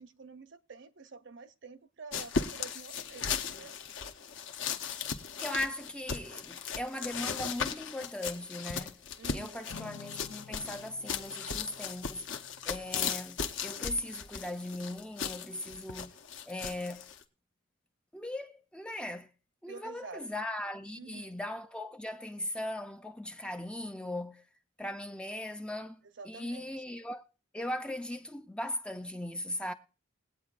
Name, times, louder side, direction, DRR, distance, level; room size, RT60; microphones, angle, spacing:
voice 1, 0.0-3.8 9.2-9.8 19.7-20.3 20.9-21.4 26.2-26.7, right 4 dB, 60° right, 0.8 m, -48 dB
sound 1, 2.1-17.2, left 6 dB, 60° left, 0.9 m, -37 dB
voice 2, 5.4-9.0 9.3-12.3 12.7-16.2 16.5-17.1 18.1-19.3 19.6-24.5 24.8-27.2 27.5-29.7, left 1 dB, 5° left, 0.4 m, -38 dB
Acoustic guitar / Strum, 9.7-14.1, left 6 dB, 80° left, 0.4 m, -52 dB
21.0 x 8.6 x 2.5 m
head